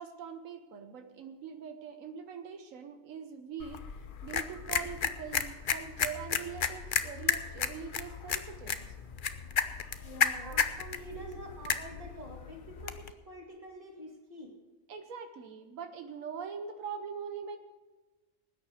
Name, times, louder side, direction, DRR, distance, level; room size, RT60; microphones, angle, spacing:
voice 1, 0.0-3.8 4.2-8.9 10.4-10.6 11.1-11.4 14.9-17.6, right 6 dB, 85° right, 7 dB, 1.3 m, -42 dB
sound 1, 3.6-13.1, left 6 dB, 50° left, 0.8 m, -33 dB
voice 2, 10.0-14.5, equal, 25° right, 0 dB, 2.5 m, -47 dB
19.5 x 9.5 x 4.9 m, 1.3 s
omnidirectional pair, 1.4 m